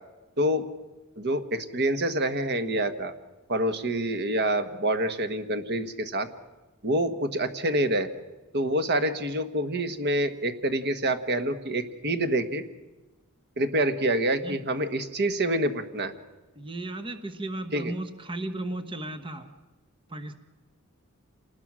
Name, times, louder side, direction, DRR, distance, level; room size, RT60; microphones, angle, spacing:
voice 1, 0.4-0.7 1.2-3.1 3.5-6.3 6.8-8.1 8.5-12.6 13.6-16.1 17.7-17.9, right 1 dB, 50° right, 9 dB, 1.4 m, -27 dB
voice 2, 16.6-19.5 20.1-20.4, right 2 dB, 25° right, 8 dB, 1.0 m, -35 dB
27.5 x 19.5 x 6.2 m, 1.2 s
head